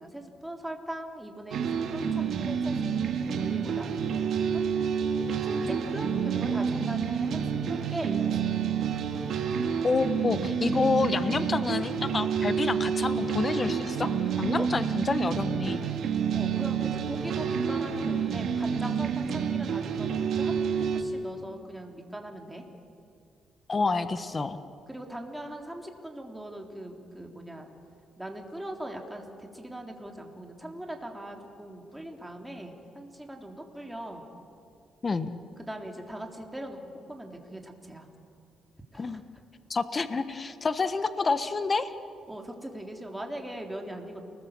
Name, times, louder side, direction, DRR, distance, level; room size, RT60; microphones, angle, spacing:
voice 1, 0.0-4.6 5.2-8.7 14.6-14.7 16.3-20.6 20.9-22.6 24.9-27.7 28.2-34.2 35.6-36.8 37.1-38.1 38.9-39.1 42.3-44.2, right 1 dB, 5° right, 2 dB, 3.5 m, -40 dB
sound 1, 1.5-21.0, right 7 dB, 70° right, 2.5 m, -29 dB
voice 2, 9.8-14.1 14.4-15.8 23.7-24.6 35.0-35.4 39.0-39.2 39.7-41.9, left 4 dB, 30° left, 11 dB, 1.2 m, -28 dB
29.5 x 20.5 x 7.4 m, 2.4 s
cardioid pair, 90°, 0 cm